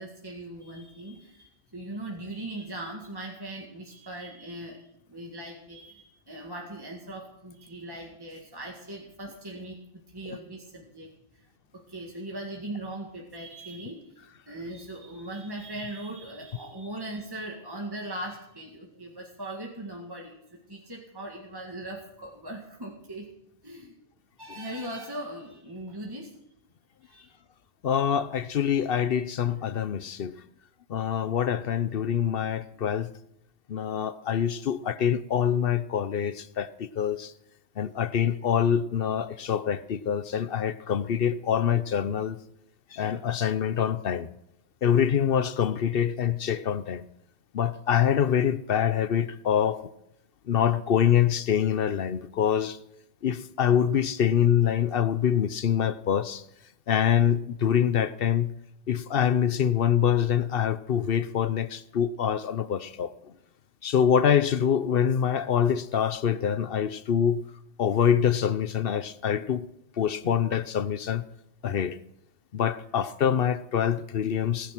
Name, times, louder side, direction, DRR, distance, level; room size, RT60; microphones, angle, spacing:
voice 1, 0.0-11.4 11.7-20.4 20.7-23.3 23.6-23.9 24.4-26.3 27.0-27.3, right 1 dB, 20° right, 2.0 m, -39 dB
voice 2, 27.8-30.4 30.9-33.1 33.7-37.3 37.8-42.4 42.9-44.3 44.8-47.1 47.5-49.8 50.5-52.8 53.2-56.4 56.9-58.5 58.9-63.3 63.8-67.4 67.8-69.7 70.0-71.2 71.6-72.0 72.5-74.7, left 8 dB, 60° left, 0.9 m, -25 dB
19.0 x 11.0 x 6.0 m
omnidirectional pair, 1.2 m